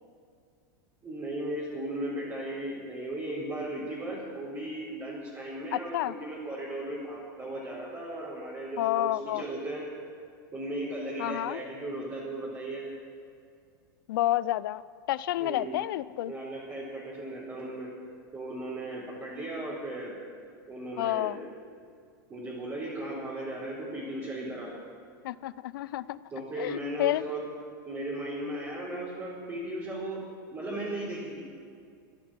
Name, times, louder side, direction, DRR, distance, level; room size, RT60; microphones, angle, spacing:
voice 1, 1.0-9.8 10.5-12.8 15.4-15.8 16.3-17.9 18.3-20.1 20.7-21.3 22.3-24.7 26.3-27.4 27.9-30.2 30.5-31.4, right 1 dB, 25° right, -8 dB, 4.0 m, -36 dB
voice 2, 5.7-6.1 8.8-9.4 11.2-11.6 14.1-14.8 15.1-16.3 21.0-21.4 25.2-26.2 26.6-27.2, left 15 dB, 70° left, 19 dB, 0.4 m, -29 dB
14.0 x 10.5 x 7.4 m, 2.3 s
hypercardioid pair, 115°, 12 cm